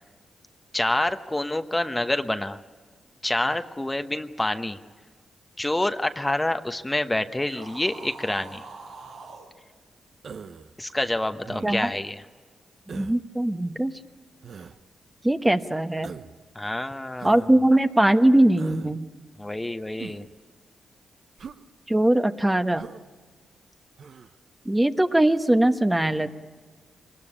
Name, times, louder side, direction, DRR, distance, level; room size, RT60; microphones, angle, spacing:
voice 1, 0.7-2.6 3.2-4.8 5.6-8.6 10.8-12.2 16.5-17.5 19.4-20.2, left 1 dB, 15° left, 9 dB, 1.0 m, -27 dB
sound 1, 7.4-9.5, right 4 dB, 90° right, 3.9 m, -43 dB
Human voice, 10.2-10.7 11.5-12.0 12.9-13.2 14.4-14.8 16.0-16.4 17.2-17.5 18.6-18.9 20.0-20.3 21.4-21.6 22.7-23.0 24.0-24.3, right 6 dB, 65° right, 0.9 m, -41 dB
voice 2, 12.9-13.9 15.2-16.1 17.2-19.1 21.9-22.9 24.7-26.3, right 1 dB, 15° right, 8 dB, 1.1 m, -21 dB
24.0 x 20.0 x 10.0 m, 1.5 s
cardioid pair, 60°, 0 cm